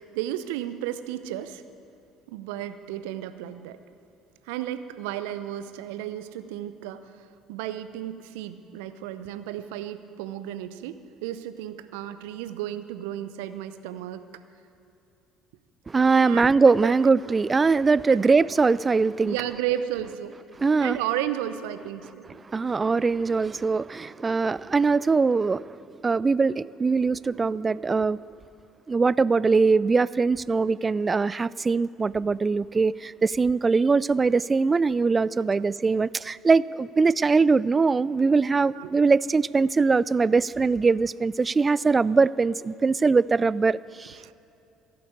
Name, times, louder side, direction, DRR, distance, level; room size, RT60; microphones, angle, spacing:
voice 1, 0.0-1.6 2.3-3.8 4.5-14.2 16.1-16.4 16.8-16.9 17.8-17.9 19.2-20.4 20.8-22.3 38.7-38.9 44.2-44.3, right 12 dB, 70° right, 12 dB, 0.7 m, -33 dB
voice 2, 15.9-19.5 20.6-21.0 22.3-25.8 26.0-28.2 28.9-44.3, right 4 dB, 25° right, 21 dB, 0.3 m, -22 dB
15.5 x 8.6 x 9.5 m, 2.7 s
figure-of-eight pair, 55°, 0 cm